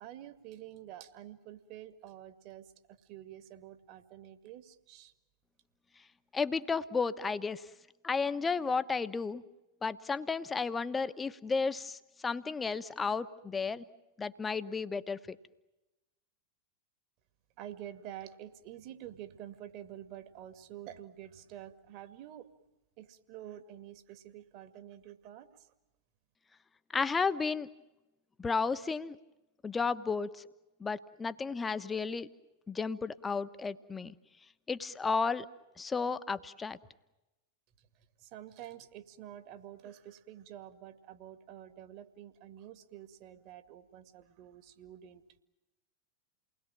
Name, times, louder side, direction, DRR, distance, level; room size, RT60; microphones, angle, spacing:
voice 1, 0.0-5.1 17.6-22.5 23.0-25.7 37.8-45.4, right 11 dB, 45° right, 9 dB, 2.1 m, -48 dB
voice 2, 6.3-7.7 8.0-9.4 9.8-13.8 14.2-15.4 26.9-27.7 28.4-29.2 29.6-30.4 30.8-32.3 32.7-34.2 34.7-35.4 35.8-36.8, left 4 dB, 15° left, 13 dB, 1.2 m, -33 dB
29.5 x 20.5 x 8.8 m, 1.0 s
figure-of-eight pair, 90°, 0 cm